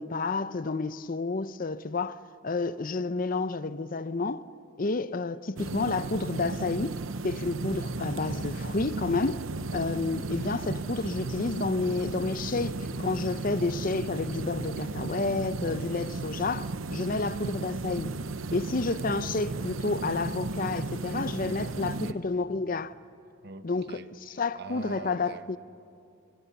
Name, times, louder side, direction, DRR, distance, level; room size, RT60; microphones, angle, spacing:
voice 1, 0.0-4.5 4.8-7.0 7.2-9.4 9.7-18.2 18.5-22.9 23.6-24.0 24.4-25.6, left 3 dB, 40° left, 0.6 m, -30 dB
sound 1, 5.6-22.1, right 3 dB, 80° right, 0.8 m, -35 dB
voice 2, 21.8-22.2 23.4-25.6, right 3 dB, 50° right, 1.0 m, -44 dB
29.0 x 27.0 x 7.0 m
head